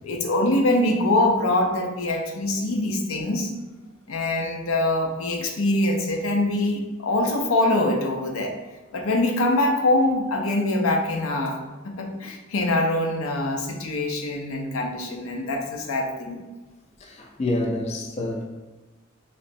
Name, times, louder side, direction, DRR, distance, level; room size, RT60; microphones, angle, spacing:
voice 1, 0.0-3.5 4.1-8.6 8.9-11.6 11.8-16.4, left 1 dB, 90° left, 0.5 m, -24 dB
voice 2, 17.0-18.4, left 1 dB, 30° left, 0.3 m, -27 dB
3.2 x 2.9 x 2.6 m
head